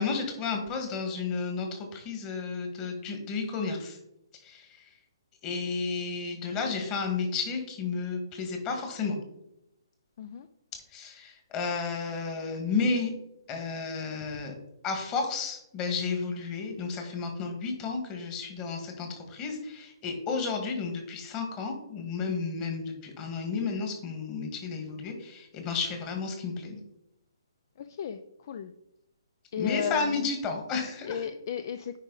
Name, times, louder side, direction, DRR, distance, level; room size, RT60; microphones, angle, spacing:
voice 1, 0.0-4.0 4.4-4.9 5.4-9.2 10.9-13.1 13.5-14.5 14.8-26.8 29.6-31.3, left 4 dB, 25° left, 3 dB, 1.9 m, -32 dB
voice 2, 27.8-28.2 28.5-28.7 29.5-30.3 31.1-32.0, left 8 dB, 50° left, 10 dB, 0.4 m, -34 dB
9.4 x 4.9 x 4.1 m, 0.83 s
hypercardioid pair, 145°, 3 cm